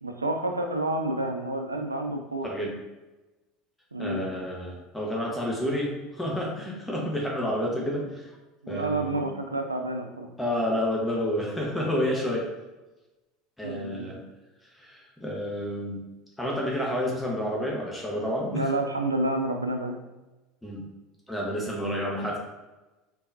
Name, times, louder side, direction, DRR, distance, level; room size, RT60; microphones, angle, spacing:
voice 1, 0.0-2.5 3.9-4.2 8.6-10.3 13.6-14.1 18.5-20.0, right 2 dB, 85° right, 4 dB, 0.3 m, -29 dB
voice 2, 2.4-2.7 4.0-8.3 8.7-9.3 10.4-12.4 13.6-14.2 14.8-16.0 16.4-18.7 20.6-20.8 21.3-22.4, equal, 5° left, -3 dB, 0.8 m, -29 dB
3.5 x 2.2 x 2.6 m, 1.1 s
figure-of-eight pair, 70°, 0 cm